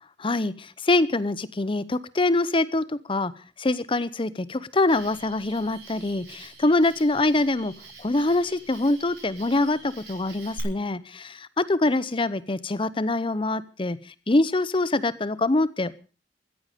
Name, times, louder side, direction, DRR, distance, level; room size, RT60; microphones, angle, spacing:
voice 1, 0.2-3.3 3.6-7.7 8.0-14.0 14.3-15.9, left 2 dB, 30° left, 17 dB, 0.7 m, -24 dB
Cricket, 4.9-10.6, right 3 dB, 75° right, 6.4 m, -46 dB
14.5 x 14.5 x 5.1 m, 0.36 s
head